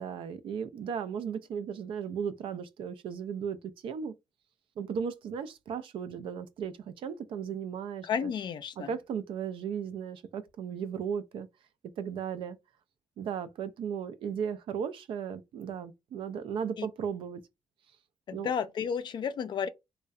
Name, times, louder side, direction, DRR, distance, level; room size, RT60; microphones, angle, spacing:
voice 1, 0.0-3.6 3.8-4.1 4.8-8.3 8.9-11.5 12.0-12.6 13.2-17.4 18.3-18.5, right 7 dB, 70° right, 0.4 m, -36 dB
voice 2, 8.0-8.9 16.8-16.9 18.3-19.7, left 7 dB, 55° left, 0.3 m, -32 dB
2.5 x 2.1 x 2.3 m
supercardioid pair, 50°, 9 cm